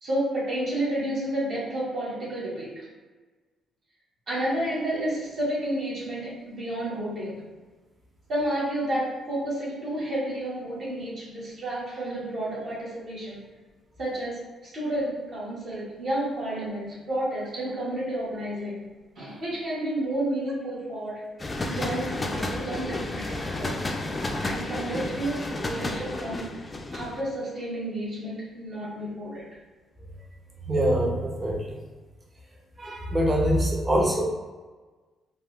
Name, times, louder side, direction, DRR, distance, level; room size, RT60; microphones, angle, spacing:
voice 1, 0.0-2.9 4.3-7.4 8.3-13.5 14.0-18.9 19.1-21.2 21.6-23.8 24.4-26.6 26.9-29.4, right 1 dB, 60° right, -7 dB, 1.1 m, -31 dB
sound 1, 21.4-27.2, left 2 dB, 25° left, 0.3 m, -31 dB
voice 2, 30.7-31.8 32.8-34.2, equal, 25° right, -2 dB, 0.7 m, -24 dB
3.4 x 2.2 x 2.3 m, 1.3 s
cardioid pair, 90°, 0 cm